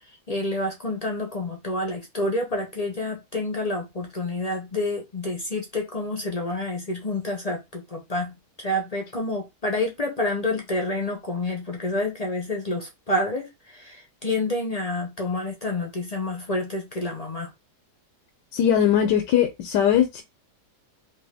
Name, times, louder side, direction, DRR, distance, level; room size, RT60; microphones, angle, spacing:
voice 1, 0.3-17.5, left 2 dB, 45° left, 0.5 m, -28 dB
voice 2, 18.5-20.2, left 9 dB, 85° left, 1.3 m, -20 dB
3.4 x 2.9 x 3.4 m
omnidirectional pair, 1.8 m